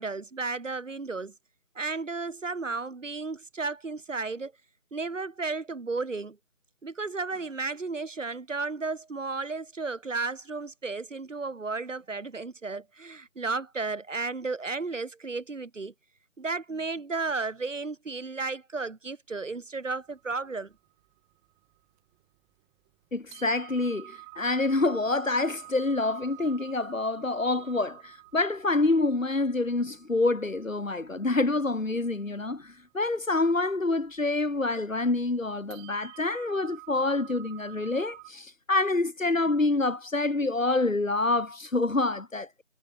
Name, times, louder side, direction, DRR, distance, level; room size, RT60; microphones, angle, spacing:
voice 1, 0.0-1.3 1.7-4.5 4.9-6.4 6.8-15.9 16.4-20.7, right 3 dB, 70° right, 2.8 m, -33 dB
sound 1, 20.0-22.3 22.8-22.9 23.3-38.3, right 32 dB, 10° right, 6.2 m, -50 dB
voice 2, 23.1-42.6, left 2 dB, 75° left, 6.2 m, -27 dB
figure-of-eight pair, 160°, 39 cm